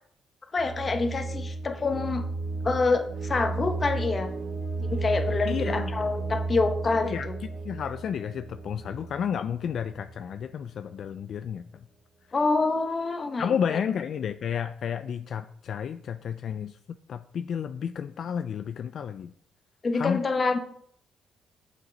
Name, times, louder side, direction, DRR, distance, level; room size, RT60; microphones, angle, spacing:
voice 1, 0.5-2.2 2.6-4.3 4.8-7.4 12.3-13.8 19.8-20.6, left 3 dB, 35° left, 6 dB, 1.2 m, -27 dB
sound 1, 0.6-10.4, right 3 dB, 80° right, 1.3 m, -33 dB
voice 2, 5.5-5.9 7.0-7.3 7.6-11.7 13.4-16.8 17.1-19.3 19.9-20.3, left 8 dB, 60° left, 10 dB, 0.4 m, -31 dB
7.2 x 6.5 x 5.2 m, 0.66 s
cardioid pair, 90°, 0 cm